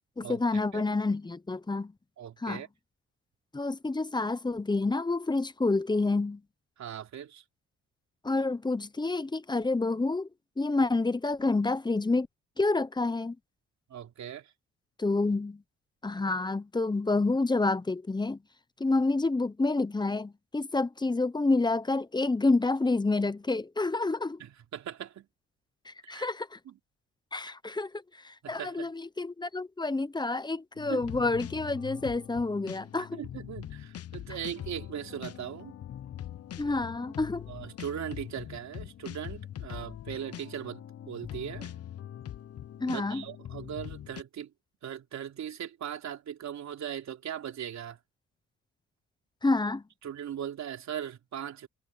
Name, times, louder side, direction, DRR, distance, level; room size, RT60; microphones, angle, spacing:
voice 1, 0.2-1.9 2.4-2.6 3.5-6.4 8.2-10.3 10.6-12.3 12.6-13.4 15.0-15.6 16.0-18.4 18.8-24.4 25.9-26.6 27.3-33.2 36.6-37.5 42.8-43.2 49.4-49.8, left 3 dB, 15° left, 0.9 m, -28 dB
voice 2, 2.2-2.7 6.8-7.4 13.9-14.5 24.4-25.3 26.0-26.3 26.7-26.8 28.4-28.9 30.9-31.0 33.2-35.8 37.5-41.7 42.8-44.5 44.8-48.0 50.0-51.7, right 9 dB, 65° right, 3.3 m, -39 dB
sound 1, 30.7-44.2, left 11 dB, 55° left, 0.9 m, -42 dB
cardioid pair, 90°, 30 cm